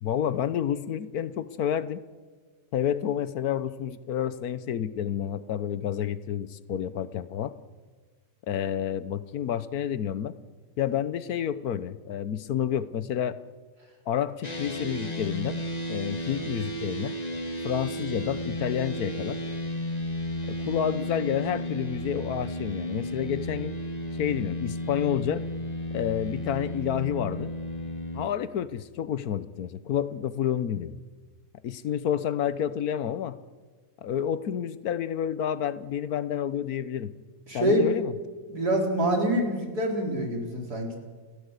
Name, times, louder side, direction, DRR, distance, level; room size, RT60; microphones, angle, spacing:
voice 1, 0.0-2.0 2.7-7.5 8.5-10.3 10.8-13.4 14.1-15.6 15.9-17.2 17.6-19.4 20.5-23.7 24.2-25.5 25.9-27.5 28.1-31.0 31.6-33.4 34.0-37.1 37.5-38.1, left 9 dB, 70° left, 15 dB, 1.3 m, -29 dB
sound 1, 14.4-28.3, equal, 25° left, 1.8 m, -33 dB
voice 2, 37.5-38.0 38.5-41.0, right 1 dB, 85° right, 1 dB, 4.8 m, -26 dB
29.0 x 15.5 x 8.2 m, 1.5 s
omnidirectional pair, 1.6 m